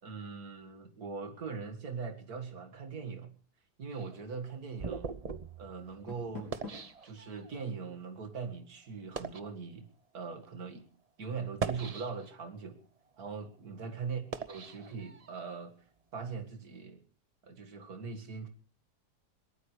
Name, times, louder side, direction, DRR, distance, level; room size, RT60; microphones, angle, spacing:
voice 1, 0.0-3.3 3.8-5.1 5.6-6.6 7.0-9.9 10.1-10.8 11.2-12.8 13.2-15.8 16.1-17.0 17.4-18.5, right 5 dB, 60° right, 7 dB, 2.3 m, -41 dB
sound 1, 3.9-7.6 8.3-8.5 9.0-9.5 10.3-10.5 11.4-12.5 13.0-15.5, right 5 dB, 40° right, 0.5 m, -41 dB
Door, 5.8-7.0, left 3 dB, 80° left, 4.2 m, -46 dB
22.0 x 18.5 x 3.3 m, 0.41 s
omnidirectional pair, 1.8 m